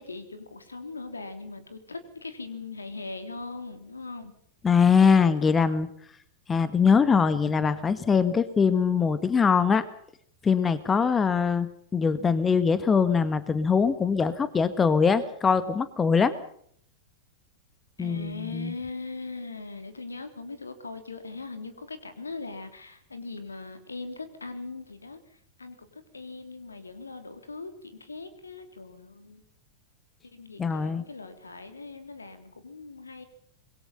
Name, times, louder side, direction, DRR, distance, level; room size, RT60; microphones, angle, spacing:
voice 1, 0.0-4.3 18.0-25.2 25.6-29.4 30.2-33.2, left 3 dB, 75° left, 9 dB, 3.2 m, -40 dB
voice 2, 4.6-5.9 6.5-9.8 10.4-16.3 18.0-18.7 30.6-31.0, left 6 dB, 20° left, 13 dB, 1.7 m, -22 dB
26.0 x 22.0 x 5.7 m, 0.64 s
figure-of-eight pair, 90°, 0 cm